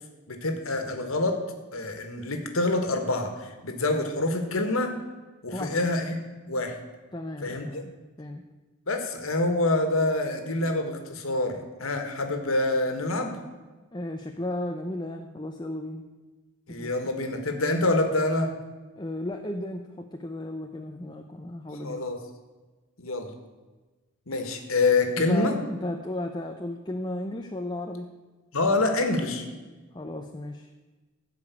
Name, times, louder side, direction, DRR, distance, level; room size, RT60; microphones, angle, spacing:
voice 1, 0.3-1.4 1.7-4.9 5.4-6.1 6.5-6.8 7.4-7.8 8.9-13.4 16.7-18.5 21.8-22.2 23.0-23.3 24.3-25.6 28.5-29.4, left 2 dB, 80° left, 6 dB, 1.7 m, -26 dB
voice 2, 5.5-5.9 7.1-7.9 8.2-8.4 13.9-16.1 16.7-17.1 19.0-22.0 25.2-28.1 29.9-30.7, left 1 dB, 20° left, 4 dB, 0.6 m, -35 dB
15.0 x 5.1 x 8.3 m, 1.3 s
head